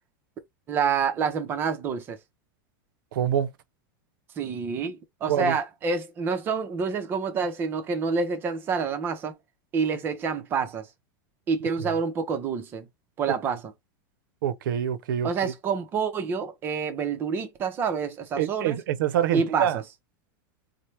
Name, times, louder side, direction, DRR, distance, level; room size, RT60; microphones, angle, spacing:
voice 1, 0.7-2.2 4.4-9.4 9.7-10.9 11.5-12.9 13.2-13.7 15.2-18.8 19.3-19.8, right 5 dB, 20° right, 0.5 m, -28 dB
voice 2, 3.1-3.5 5.3-5.6 14.4-15.5 18.4-19.8, right 9 dB, 75° right, 0.5 m, -26 dB
4.3 x 2.0 x 3.2 m
supercardioid pair, 170°, 11 cm